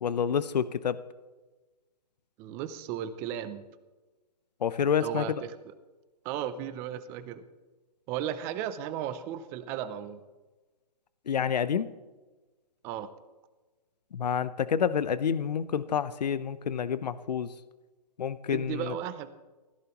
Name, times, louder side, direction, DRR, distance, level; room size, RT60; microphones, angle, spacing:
voice 1, 0.0-1.0 4.6-5.3 11.3-11.9 14.1-17.5 18.2-18.9, left 7 dB, 75° left, 15 dB, 0.8 m, -28 dB
voice 2, 2.4-3.6 5.0-5.3 5.7-5.8 6.2-7.4 8.1-10.2 12.8-13.1 18.5-19.3, right 10 dB, 10° right, 12 dB, 0.4 m, -35 dB
20.5 x 15.5 x 3.0 m, 1.2 s
hypercardioid pair, 155°, 21 cm